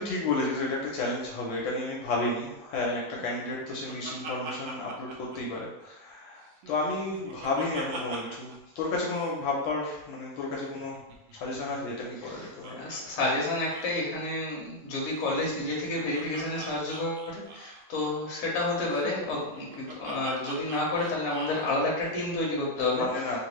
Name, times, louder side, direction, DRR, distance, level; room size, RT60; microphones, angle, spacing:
voice 1, 0.0-11.0 11.3-12.9 22.9-23.4, left 2 dB, 75° left, -3 dB, 1.3 m, -32 dB
Laughter, 3.2-6.1 6.5-8.6 8.8-8.9 9.1-9.4 10.6-13.0 13.2-13.3 13.6-13.9 15.1-17.9 18.9-21.7, right 2 dB, 75° right, 1.1 m, -43 dB
voice 2, 12.2-23.1, left 2 dB, 55° left, -3 dB, 1.1 m, -30 dB
3.3 x 2.5 x 3.0 m, 0.93 s
omnidirectional pair, 2.3 m